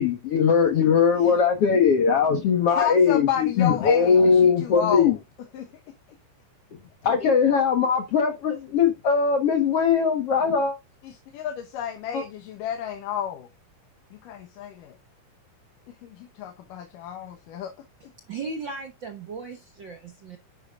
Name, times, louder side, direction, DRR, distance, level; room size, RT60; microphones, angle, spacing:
voice 1, 0.0-5.2 7.0-10.8 12.1-12.2, left 6 dB, 55° left, 2.0 m, -20 dB
voice 2, 2.7-5.2 5.5-5.7 11.0-13.5 14.1-15.0 16.0-17.7, left 9 dB, 80° left, 2.7 m, -31 dB
voice 3, 18.3-20.4, right 4 dB, 65° right, 1.2 m, -36 dB
10.5 x 8.7 x 2.4 m
omnidirectional pair, 3.8 m